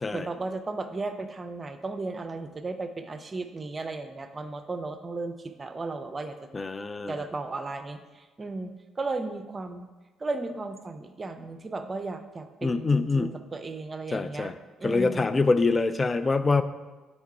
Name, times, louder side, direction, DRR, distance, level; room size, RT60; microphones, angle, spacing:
voice 1, 0.1-6.4 7.1-9.9 10.2-14.5 14.8-15.3, right 3 dB, 30° right, 8 dB, 0.5 m, -35 dB
voice 2, 6.5-7.1 12.6-13.3 14.1-14.5 14.8-16.6, left 3 dB, 30° left, 12 dB, 0.4 m, -25 dB
4.6 x 4.4 x 5.6 m, 1.2 s
figure-of-eight pair, 45°, 0 cm